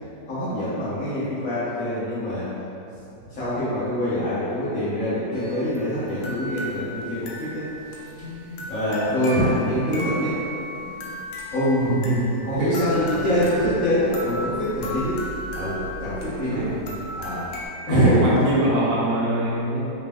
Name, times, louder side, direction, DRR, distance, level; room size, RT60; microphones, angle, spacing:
voice 1, 0.3-2.5 3.3-7.6 8.2-10.3 10.7-11.1 11.5-11.9 12.5-15.2 15.5-16.6 17.2-17.5 17.9-18.2, equal, 50° left, -15 dB, 1.5 m, -24 dB
sound 1, 5.3-17.7, equal, 90° left, 1.4 m, -36 dB
voice 2, 9.2-9.5 11.8-12.4 16.5-16.8 17.9-19.8, right 1 dB, 80° right, -6 dB, 1.6 m, -24 dB
4.1 x 3.0 x 3.5 m, 2.9 s
omnidirectional pair, 2.0 m